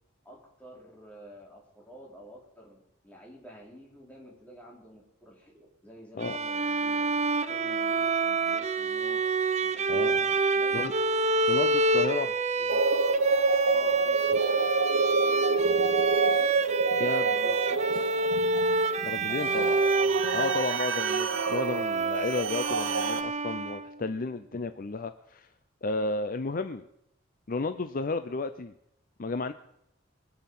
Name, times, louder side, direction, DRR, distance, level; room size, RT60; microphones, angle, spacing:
voice 1, 0.2-7.1 7.5-9.2 9.6-10.2 10.5-10.9 11.5-12.8 13.6-18.6, right 1 dB, 10° left, -3 dB, 4.0 m, -50 dB
Bowed string instrument, 6.2-24.0, right 3 dB, 35° right, 0.7 m, -28 dB
voice 2, 9.9-10.3 10.7-10.9 11.5-12.3 17.0-17.3 19.0-19.9 20.3-25.5 25.8-26.8 27.5-28.7 29.2-29.5, left 3 dB, 45° left, 10 dB, 0.6 m, -32 dB
sound 1, 12.7-23.2, right 4 dB, 85° right, 0.7 m, -28 dB
sound 2, 14.4-15.5 15.8-15.9 17.8-18.9 19.3-20.2, left 3 dB, 80° left, 2.9 m, -44 dB
23.5 x 8.0 x 5.5 m, 0.78 s
head